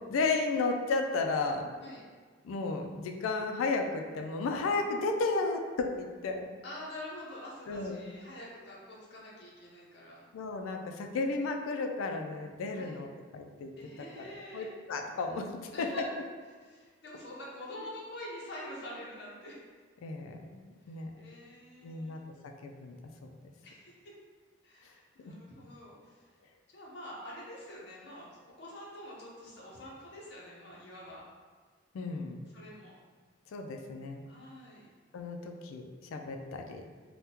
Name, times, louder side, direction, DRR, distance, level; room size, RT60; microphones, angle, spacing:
voice 1, 0.1-1.7 2.4-6.5 7.7-8.0 10.3-13.1 13.3-13.7 14.5-15.9 20.0-20.6 20.9-21.1 21.8-22.2 22.6-23.0 23.2-23.4 31.9-32.5 33.5-34.2 35.1-36.8, left 3 dB, 90° left, 4 dB, 0.3 m, -33 dB
voice 2, 6.6-10.2 12.7-13.0 13.8-14.8 15.7-16.1 16.6-19.6 20.8-22.2 23.6-24.1 24.6-26.3 26.7-28.3 28.6-31.2 32.5-32.9 34.3-34.9, left 1 dB, 55° left, -5 dB, 0.7 m, -46 dB
3.5 x 2.2 x 2.8 m, 1.5 s
head